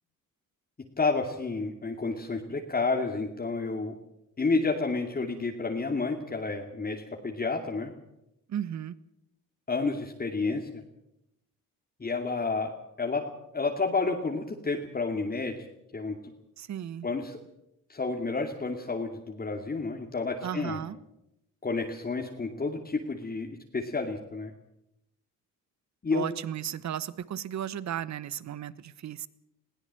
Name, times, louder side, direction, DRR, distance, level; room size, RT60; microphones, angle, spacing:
voice 1, 1.0-3.9 4.4-7.9 9.7-10.8 12.0-12.7 13.0-15.6 15.9-16.2 17.0-17.4 17.9-20.8 21.6-24.5 26.0-26.3, left 3 dB, 25° left, 2 dB, 2.5 m, -30 dB
voice 2, 8.5-9.0 16.6-17.1 20.4-21.0 26.1-29.3, right 10 dB, 55° right, 18 dB, 1.1 m, -35 dB
21.0 x 16.5 x 7.6 m, 0.84 s
cardioid pair, 85°, 34 cm